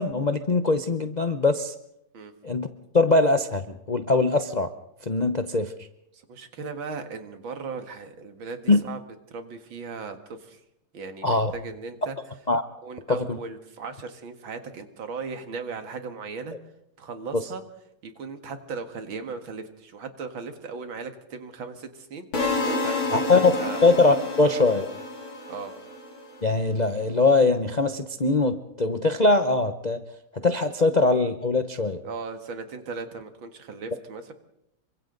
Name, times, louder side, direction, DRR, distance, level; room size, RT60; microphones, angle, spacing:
voice 1, 0.0-1.7 2.4-2.7 2.9-4.7 5.1-5.7 8.7-8.8 11.2-11.5 12.5-12.6 13.1-13.4 17.3-17.4 23.1-23.5 23.8-24.9 26.4-30.0 30.3-32.0, left 3 dB, 45° left, 7 dB, 0.5 m, -22 dB
voice 2, 6.1-9.0 9.3-10.6 10.9-12.2 12.8-16.6 17.0-17.6 18.0-23.8 25.5-25.7 32.0-34.3, right 4 dB, 85° right, 7 dB, 2.6 m, -37 dB
sound 1, 22.3-26.4, left 3 dB, 75° left, 3.9 m, -29 dB
28.0 x 24.5 x 3.9 m, 0.78 s
omnidirectional pair, 2.1 m